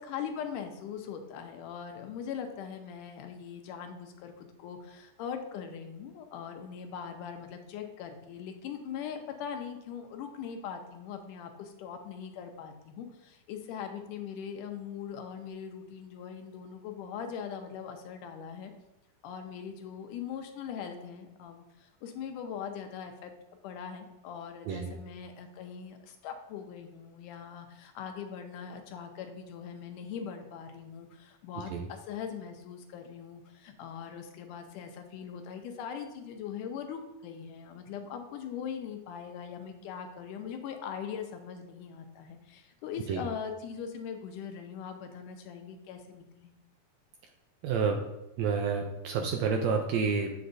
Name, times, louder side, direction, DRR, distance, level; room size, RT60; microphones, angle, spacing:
voice 1, 0.0-18.7 19.2-23.3 23.6-46.5, left 7 dB, 85° left, 6 dB, 2.2 m, -41 dB
voice 2, 47.6-48.0 48.4-50.3, right 5 dB, 80° right, 3 dB, 1.6 m, -29 dB
7.8 x 6.3 x 2.6 m, 0.93 s
omnidirectional pair, 3.6 m